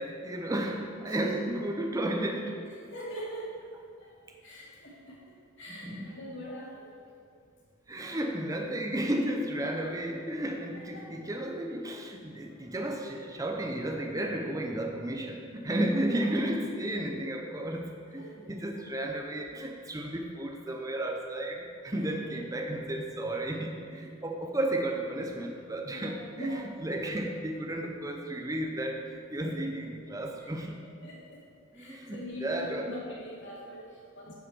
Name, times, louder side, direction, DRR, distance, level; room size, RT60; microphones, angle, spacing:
voice 1, 0.0-2.7 5.7-6.2 7.9-30.8 31.7-33.0 34.3-34.4, right 1 dB, 15° right, 2 dB, 0.6 m, -33 dB
voice 2, 1.1-1.5 2.9-3.6 4.0-4.1 4.4-6.9 10.7-11.1 15.7-16.0 18.2-18.4 18.8-18.9 22.0-22.1 24.0-24.1 25.9-26.7 27.8-27.9 29.4-29.6 30.4-30.6 31.0-31.4 31.7-34.3, right 1 dB, 55° left, -5 dB, 2.4 m, -43 dB
9.6 x 8.2 x 4.3 m, 2.3 s
head